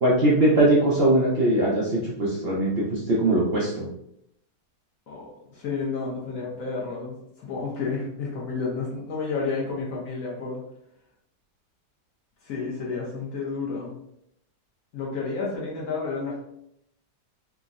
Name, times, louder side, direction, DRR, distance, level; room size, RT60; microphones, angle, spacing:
voice 1, 0.0-3.8, right 1 dB, 70° right, -5 dB, 0.5 m, -21 dB
voice 2, 5.1-10.6 12.4-14.0 14.9-16.4, left 4 dB, 65° left, -4 dB, 0.9 m, -31 dB
3.6 x 2.0 x 2.4 m, 0.76 s
omnidirectional pair, 1.9 m